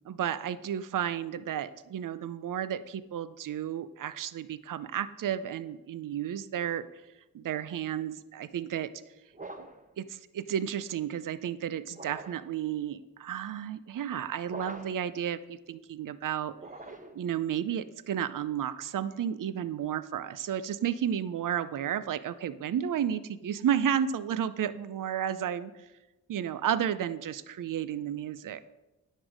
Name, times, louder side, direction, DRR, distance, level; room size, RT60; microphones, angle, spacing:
voice 1, 0.0-6.9 7.3-8.9 9.6-9.7 10.0-16.5 17.1-25.9 26.3-28.6, right 9 dB, 60° right, 15 dB, 0.6 m, -32 dB
sound 1, 9.3-9.9 11.9-12.5 14.4-15.1 16.5-17.3, right 2 dB, 20° right, 1.2 m, -44 dB
10.0 x 6.3 x 5.0 m, 1.0 s
supercardioid pair, 45°, 36 cm